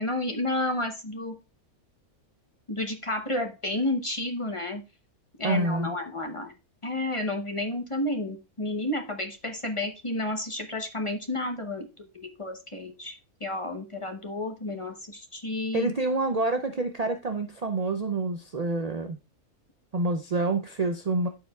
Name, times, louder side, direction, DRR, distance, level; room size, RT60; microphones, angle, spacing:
voice 1, 0.0-1.4 2.7-4.8 5.4-6.5 6.8-11.9 12.1-15.9, left 1 dB, 25° left, 4 dB, 0.8 m, -31 dB
voice 2, 5.4-6.0 15.7-19.2 19.9-21.3, right 2 dB, 70° right, 6 dB, 0.3 m, -27 dB
13.5 x 4.8 x 2.3 m, 0.28 s
omnidirectional pair, 1.5 m